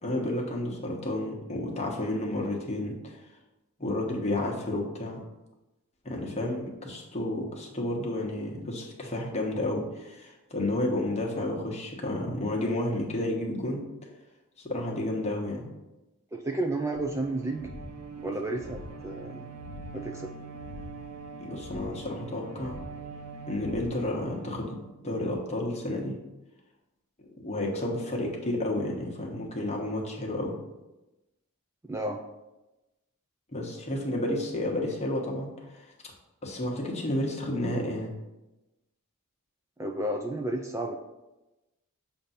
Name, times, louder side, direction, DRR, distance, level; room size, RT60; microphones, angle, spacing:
voice 1, 0.0-3.2 3.8-5.2 6.0-13.8 14.6-15.7 21.4-22.8 23.5-26.1 27.2-30.5 33.5-35.9 36.4-38.1, left 1 dB, 30° left, -1 dB, 1.1 m, -31 dB
voice 2, 16.3-17.7 18.2-19.5 19.9-20.3 31.9-32.2 39.8-41.0, right 2 dB, 15° right, 2 dB, 0.4 m, -32 dB
sound 1, 16.9-24.3, left 2 dB, 45° left, 0.6 m, -46 dB
Bowed string instrument, 16.9-25.3, right 6 dB, 80° right, 0.5 m, -44 dB
6.8 x 2.7 x 5.6 m, 1.0 s
head